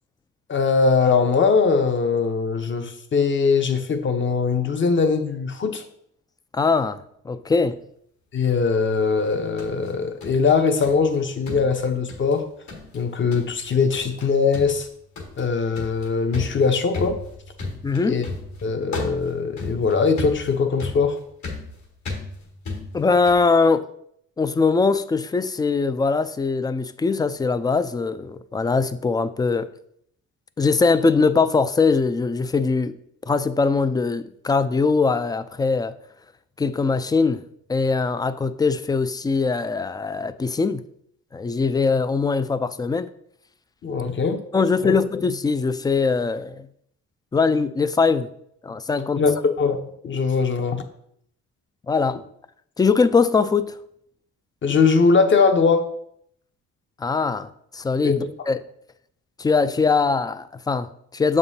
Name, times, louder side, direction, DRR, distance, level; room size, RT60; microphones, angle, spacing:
voice 1, 0.5-5.8 8.3-12.5 12.9-14.9 15.4-17.2 18.0-18.2 18.6-21.2 43.8-44.4 44.8-45.0 49.2-49.3 49.6-49.8 50.0-50.8 54.6-55.9 58.0-58.2, left 5 dB, 40° left, 7 dB, 0.8 m, -21 dB
voice 2, 6.5-7.8 17.8-18.2 22.9-23.8 24.4-29.7 30.6-33.0 33.3-35.9 36.6-37.4 37.7-40.8 41.3-43.1 44.5-46.7 47.3-48.3 48.6-49.2 51.9-52.2 52.8-53.8 57.0-58.6 59.4-61.4, left 4 dB, 15° left, 13 dB, 0.3 m, -21 dB
sound 1, 9.2-11.2 11.5-12.4 12.7-13.0 13.3-13.7 13.9-14.3 14.5-23.5, left 3 dB, 65° left, 1.8 m, -35 dB
6.9 x 5.3 x 2.7 m, 0.70 s
cardioid pair, 90°, 30 cm